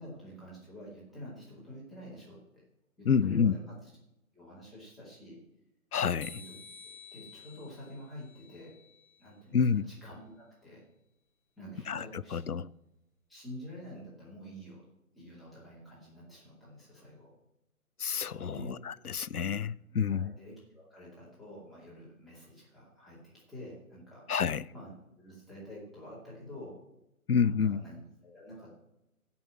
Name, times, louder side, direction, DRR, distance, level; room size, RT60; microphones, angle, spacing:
voice 1, 0.0-2.6 3.0-3.7 4.3-5.4 6.3-6.5 7.1-8.7 9.2-10.8 11.6-12.6 13.3-14.8 15.1-17.3 18.4-18.8 20.0-24.2 24.7-26.7 27.4-28.8, equal, ahead, 2.6 m, -48 dB
voice 2, 3.1-3.5 5.9-6.4 9.5-9.9 11.9-12.7 18.0-20.3 24.3-24.7 27.3-27.8, left 6 dB, 85° left, 0.7 m, -28 dB
sound 1, 6.2-9.3, left 4 dB, 30° left, 1.9 m, -52 dB
15.0 x 5.7 x 7.6 m
figure-of-eight pair, 150°, 44 cm